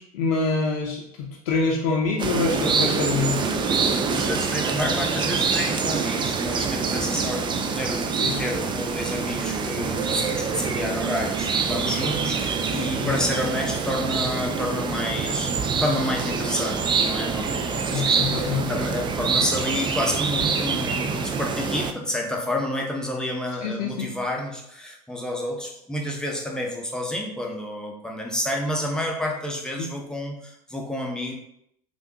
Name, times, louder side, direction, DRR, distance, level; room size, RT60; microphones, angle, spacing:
voice 1, 0.0-3.4 8.2-8.4 13.0-13.2 17.9-18.7 23.6-24.1 29.8-29.9, left 4 dB, 75° left, -1 dB, 0.5 m, -26 dB
sound 1, 2.2-21.9, right 5 dB, 25° right, 0.4 m, -25 dB
voice 2, 4.2-31.3, left 1 dB, 5° left, -1 dB, 0.7 m, -29 dB
3.4 x 2.5 x 2.8 m, 0.76 s
hypercardioid pair, 80°, 20 cm